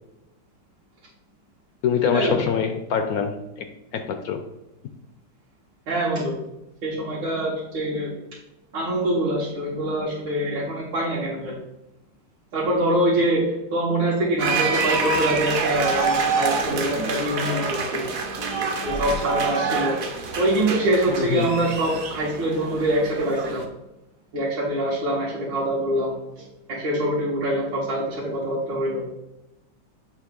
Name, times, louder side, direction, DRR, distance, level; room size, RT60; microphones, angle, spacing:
voice 1, 1.8-4.4 21.1-21.5, left 7 dB, 75° left, 7 dB, 0.8 m, -25 dB
voice 2, 5.9-6.4 6.8-8.1 8.7-11.6 12.5-18.1 18.8-20.0 20.4-23.6 24.3-26.4 26.7-29.1, right 1 dB, 75° right, -7 dB, 2.1 m, -24 dB
sound 1, 14.4-23.6, right 4 dB, 55° right, 1.1 m, -27 dB
7.4 x 2.9 x 5.2 m, 0.92 s
omnidirectional pair, 2.0 m